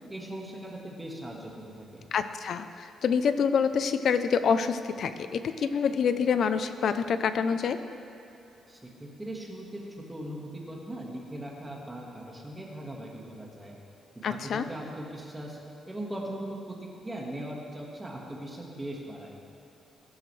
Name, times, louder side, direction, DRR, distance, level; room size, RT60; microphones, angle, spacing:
voice 1, 0.1-2.1 8.7-9.8 10.1-13.8 14.1-15.6 15.9-19.4, right 1 dB, 10° right, -2 dB, 1.7 m, -39 dB
voice 2, 2.1-7.8 14.2-14.6, left 6 dB, 50° left, 10 dB, 0.6 m, -26 dB
21.5 x 12.0 x 3.3 m, 3.0 s
cardioid pair, 175°, 0 cm